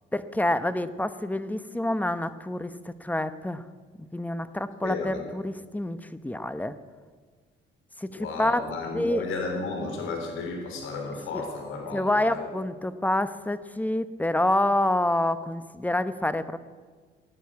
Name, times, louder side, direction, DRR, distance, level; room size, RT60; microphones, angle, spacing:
voice 1, 0.1-3.6 4.1-6.7 8.0-8.6 8.9-9.2 11.3-11.4 11.9-16.6, left 1 dB, 10° left, 12 dB, 0.9 m, -27 dB
voice 2, 4.8-5.2 8.1-12.5, left 3 dB, 85° left, 3 dB, 3.4 m, -33 dB
17.0 x 10.0 x 8.4 m, 1.5 s
cardioid pair, 90°, 20 cm